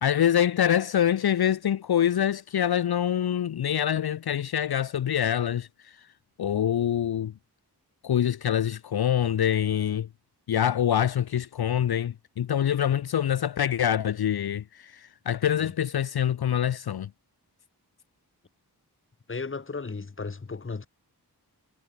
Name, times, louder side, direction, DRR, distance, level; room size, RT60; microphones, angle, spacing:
voice 1, 0.0-6.0 6.4-7.3 8.0-10.1 10.5-17.1, left 10 dB, 70° left, 0.6 m, -25 dB
voice 2, 19.3-20.9, left 4 dB, 30° left, 1.1 m, -35 dB
wide cardioid pair, 75°, 40 cm